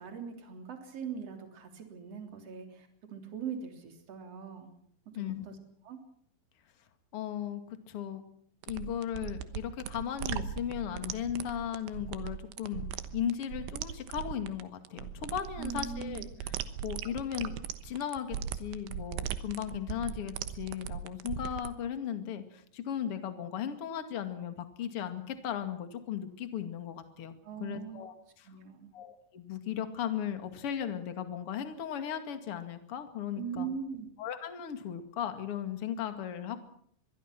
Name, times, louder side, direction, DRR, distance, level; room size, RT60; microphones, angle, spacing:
voice 1, 0.0-4.7 5.1-5.6 5.8-6.0 15.6-16.2 27.4-28.0 28.5-28.9 33.4-34.1, right 6 dB, 35° right, 5 dB, 4.0 m, -41 dB
voice 2, 5.1-5.5 7.1-7.6 7.9-8.2 8.7-12.9 13.1-16.3 16.8-17.5 17.8-27.3 27.6-28.5 28.9-33.7 34.2-36.6, left 9 dB, 40° left, 8 dB, 2.2 m, -36 dB
sound 1, 8.6-21.7, right 10 dB, 80° right, 3.5 m, -39 dB
25.0 x 22.0 x 6.1 m, 0.64 s
omnidirectional pair, 5.3 m